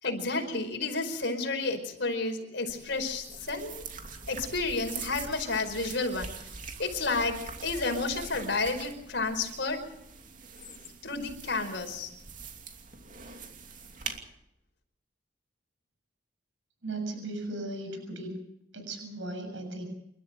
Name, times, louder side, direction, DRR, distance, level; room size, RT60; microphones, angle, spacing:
voice 1, 0.0-3.8 4.3-6.5 6.8-7.4 7.6-9.8 11.0-12.1, left 3 dB, 60° left, 5 dB, 4.9 m, -31 dB
sound 1, 2.7-14.2, right 5 dB, 40° right, 2.8 m, -43 dB
voice 2, 16.8-18.3 18.7-19.8, right 2 dB, 70° right, 5 dB, 7.2 m, -37 dB
29.0 x 13.0 x 7.9 m, 0.80 s
head